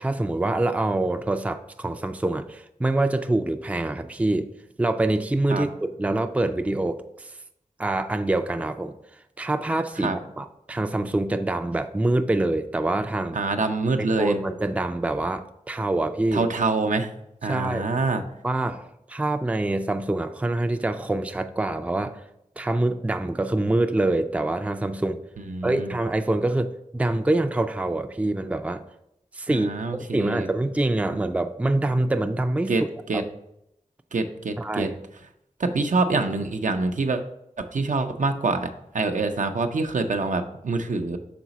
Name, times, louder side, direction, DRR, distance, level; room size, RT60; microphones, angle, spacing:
voice 1, 0.0-4.5 4.8-7.3 7.8-9.0 9.4-13.4 14.0-16.5 17.5-17.9 18.4-22.2 22.6-25.2 25.6-28.8 29.3-29.7 30.0-32.7 33.1-33.2 34.6-35.0, right 2 dB, 10° right, 8 dB, 0.4 m, -25 dB
voice 2, 13.3-14.4 16.3-17.1 17.4-18.2 25.5-25.9 29.5-30.5 32.7-32.8 33.1-33.2 34.1-34.9 35.6-37.2 37.6-38.7 38.9-41.2, right 3 dB, 70° right, 6 dB, 0.5 m, -25 dB
6.0 x 3.9 x 4.0 m, 0.81 s
cardioid pair, 40°, 14 cm